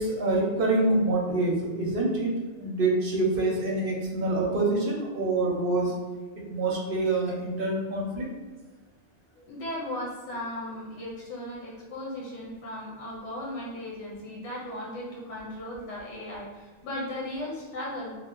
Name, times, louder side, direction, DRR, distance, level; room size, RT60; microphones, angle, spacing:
voice 1, 0.0-2.3 2.6-5.9 6.5-8.2, right 2 dB, 60° right, -2 dB, 0.7 m, -26 dB
voice 2, 9.4-18.2, left 1 dB, 75° left, -5 dB, 1.0 m, -36 dB
2.7 x 2.1 x 3.6 m, 1.3 s
omnidirectional pair, 1.2 m